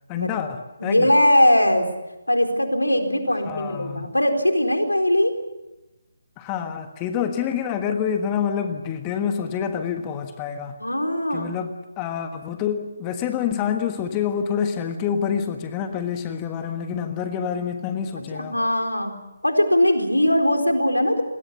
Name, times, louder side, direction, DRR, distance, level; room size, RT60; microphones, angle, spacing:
voice 1, 0.1-1.1 3.4-4.1 6.4-10.8 11.3-18.6, left 8 dB, 20° left, 7 dB, 1.4 m, -27 dB
voice 2, 0.8-1.9 2.3-5.3 10.8-11.5 18.3-19.1 19.4-21.2, left 1 dB, 85° left, 6 dB, 4.2 m, -20 dB
28.5 x 21.0 x 7.0 m, 1.0 s
figure-of-eight pair, 145°, 0 cm